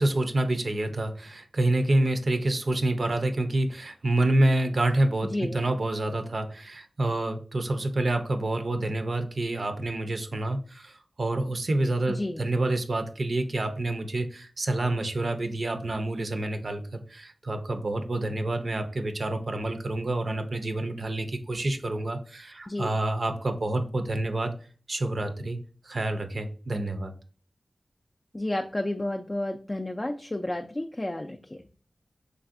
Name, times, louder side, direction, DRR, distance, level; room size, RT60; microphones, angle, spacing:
voice 1, 0.0-24.5 24.9-25.6 25.8-27.1, right 1 dB, 65° right, 7 dB, 0.4 m, -28 dB
voice 2, 5.2-5.6 12.1-12.4 22.7-22.9 28.3-31.6, left 1 dB, 30° left, 3 dB, 0.3 m, -31 dB
3.2 x 2.5 x 2.4 m, 0.40 s
cardioid pair, 45°, 0 cm